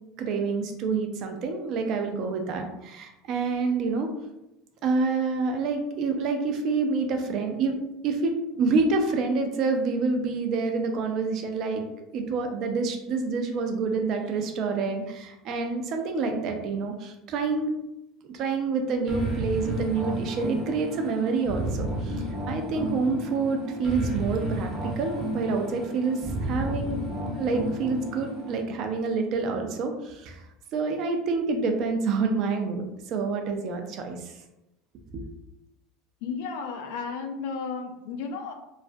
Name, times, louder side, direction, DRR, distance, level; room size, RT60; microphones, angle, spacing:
voice 1, 0.2-4.1 4.8-7.8 8.0-11.8 12.1-17.7 18.2-27.0 27.3-30.4 30.7-34.3 35.1-35.2, right 4 dB, 50° right, 5 dB, 0.4 m, -27 dB
sound 1, 19.1-28.6, right 1 dB, 20° right, 0.7 m, -32 dB
voice 2, 36.2-38.5, left 5 dB, 75° left, 5 dB, 0.3 m, -33 dB
2.3 x 2.1 x 2.5 m, 0.91 s
supercardioid pair, 130°, 0 cm